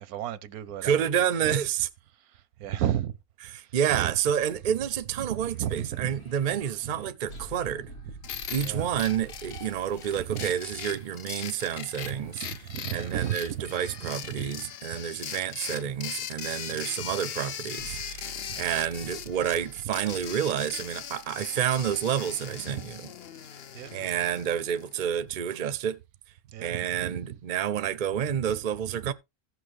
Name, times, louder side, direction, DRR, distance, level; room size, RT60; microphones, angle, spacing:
voice 1, 0.0-1.0 1.4-1.5 2.6-3.1 4.0-4.1 5.3-6.1 8.6-8.9 10.2-10.5 12.2-12.3 12.7-13.6 14.0-14.4 16.7-16.9 23.7-23.9 26.5-27.3, right 11 dB, 90° right, 1.2 m, -33 dB
voice 2, 0.8-1.9 3.5-7.9 8.5-12.5 12.9-23.1 23.9-26.0 26.6-29.1, right 9 dB, 45° right, 0.6 m, -29 dB
sound 1, 4.3-11.5 17.8-21.9, right 4 dB, 85° left, 2.8 m, -49 dB
sound 2, 8.2-25.2, left 8 dB, 55° left, 0.8 m, -40 dB
15.5 x 6.1 x 3.2 m
omnidirectional pair, 1.5 m